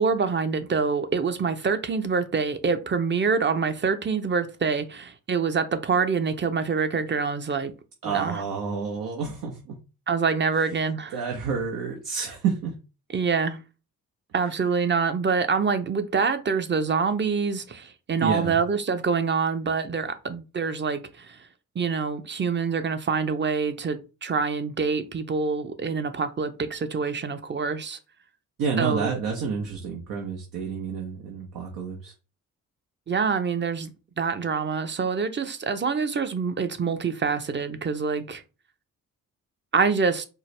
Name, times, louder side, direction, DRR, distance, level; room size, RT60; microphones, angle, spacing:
voice 1, 0.0-7.7 8.0-8.4 10.1-11.2 13.1-13.6 14.3-21.4 21.7-28.0 28.8-29.1 33.1-33.9 34.2-38.4 39.7-40.3, right 5 dB, 35° right, 0.7 m, -26 dB
voice 2, 8.0-9.8 11.1-12.7 18.2-18.6 28.6-32.1, right 6 dB, 75° right, 0.9 m, -29 dB
4.5 x 2.1 x 3.2 m
supercardioid pair, 60°, 33 cm